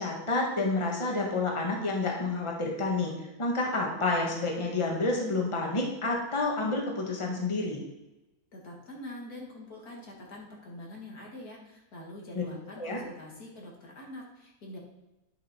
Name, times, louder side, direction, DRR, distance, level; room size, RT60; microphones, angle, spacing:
voice 1, 0.0-3.1 3.4-7.8 12.3-12.4 12.8-13.0, left 2 dB, 20° left, -1 dB, 1.4 m, -29 dB
voice 2, 8.5-14.8, left 1 dB, 85° left, -2 dB, 2.6 m, -45 dB
10.0 x 5.1 x 4.3 m, 1.0 s
omnidirectional pair, 1.6 m